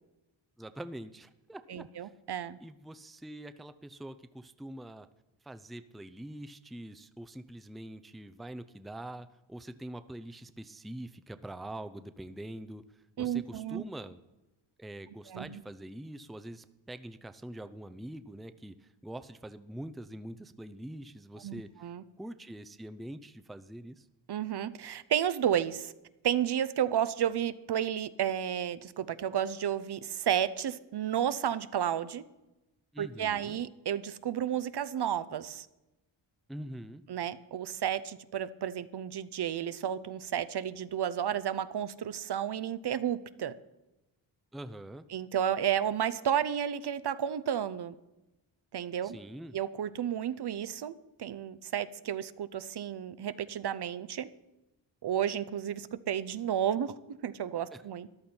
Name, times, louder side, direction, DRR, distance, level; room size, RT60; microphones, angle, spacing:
voice 1, 0.6-2.1 2.6-5.1 5.4-14.2 14.8-21.9 22.2-24.1 32.9-33.6 36.5-37.0 44.5-45.1 49.0-49.6 57.7-57.8, right 1 dB, ahead, 11 dB, 0.5 m, -44 dB
voice 2, 1.7-2.6 13.2-13.8 15.3-15.6 21.4-22.0 24.3-25.9 26.2-32.2 33.0-35.7 37.1-43.5 45.1-47.9 48.7-49.2 49.5-50.9 51.2-54.3 55.0-56.9 57.2-58.1, right 9 dB, 60° right, 14 dB, 0.7 m, -32 dB
13.5 x 11.5 x 4.4 m, 1.0 s
cardioid pair, 80°, 47 cm